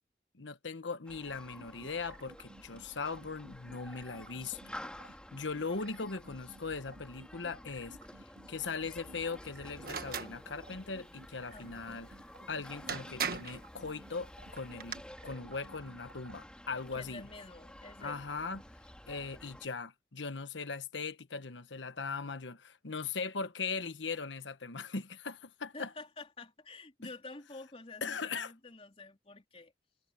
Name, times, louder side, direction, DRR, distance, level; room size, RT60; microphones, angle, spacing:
voice 1, 0.3-4.6 5.0-8.0 8.5-12.2 12.5-15.0 15.2-17.2 18.0-18.6 19.1-25.9 28.0-28.5, left 4 dB, 90° left, 1.2 m, -39 dB
Human group actions, 1.1-19.7, left 1 dB, 5° left, 3.9 m, -51 dB
sound 1, 1.6-16.4, right 2 dB, 70° right, 3.1 m, -55 dB
sound 2, 9.8-10.3 12.4-12.5 12.9-13.6 14.6-15.0, right 6 dB, 55° right, 1.5 m, -37 dB
voice 2, 11.5-12.0 16.9-18.2 25.7-29.7, left 3 dB, 30° left, 3.6 m, -49 dB
head